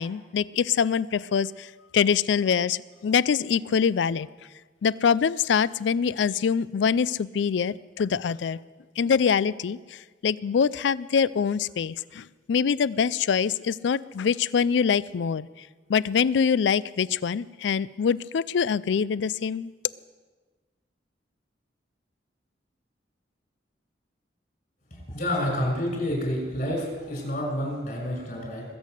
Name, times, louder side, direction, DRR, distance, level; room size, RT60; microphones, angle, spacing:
voice 1, 0.0-4.3 4.8-8.6 9.0-15.5 15.9-19.7, left 6 dB, 75° left, 20 dB, 0.4 m, -24 dB
voice 2, 25.1-28.7, equal, 50° left, 0 dB, 5.9 m, -28 dB
22.0 x 8.4 x 6.5 m, 1.4 s
head